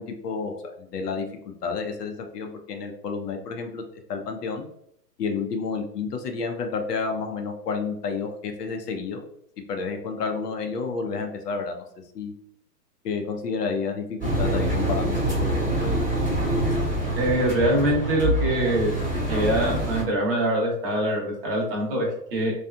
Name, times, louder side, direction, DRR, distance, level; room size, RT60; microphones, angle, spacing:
voice 1, 0.0-4.6 5.2-9.2 9.7-11.8 12.1-12.3 13.0-16.0, left 5 dB, 70° left, 4 dB, 0.7 m, -30 dB
Engine, 14.2-20.0, right 1 dB, 5° left, 0.5 m, -25 dB
voice 2, 17.2-18.9 19.3-22.5, right 1 dB, 35° right, -2 dB, 0.8 m, -24 dB
2.7 x 2.4 x 2.2 m, 0.72 s
hypercardioid pair, 155°, 49 cm